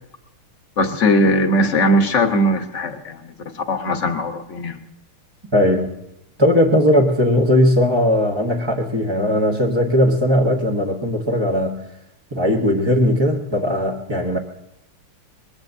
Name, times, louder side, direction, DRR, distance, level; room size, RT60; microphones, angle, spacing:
voice 1, 0.8-4.8, left 1 dB, 40° left, 5 dB, 1.2 m, -19 dB
voice 2, 5.5-5.9 6.4-11.8 12.3-14.4, left 1 dB, 20° right, -2 dB, 0.7 m, -18 dB
25.0 x 21.5 x 2.7 m, 0.83 s
omnidirectional pair, 2.4 m